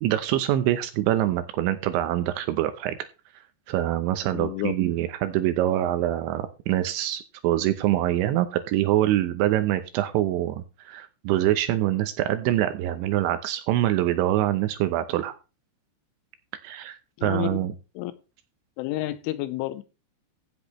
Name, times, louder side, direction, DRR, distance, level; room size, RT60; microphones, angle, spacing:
voice 1, 0.0-3.0 3.7-15.3 16.6-17.7, right 13 dB, 80° right, 2.8 m, -25 dB
voice 2, 4.3-4.7 17.2-17.6 18.0-18.1 18.8-19.8, left 16 dB, 80° left, 3.1 m, -30 dB
15.5 x 8.2 x 3.1 m
omnidirectional pair, 5.8 m